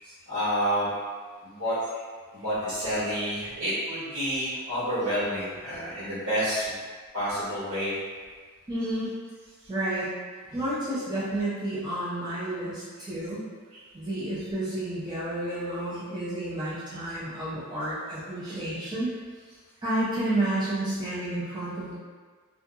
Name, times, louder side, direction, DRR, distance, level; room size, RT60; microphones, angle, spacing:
voice 1, 0.0-1.0 1.4-2.0 2.3-6.7 7.1-8.0 8.8-8.9 9.6-9.7 13.7-13.8 16.9-17.0 18.5-18.6, equal, 70° right, -10 dB, 1.4 m, -29 dB
voice 2, 8.7-9.2 9.7-10.1 10.5-13.4 13.9-19.1 19.8-21.9, right 1 dB, 20° right, -10 dB, 0.4 m, -30 dB
2.4 x 2.2 x 2.6 m, 1.5 s
head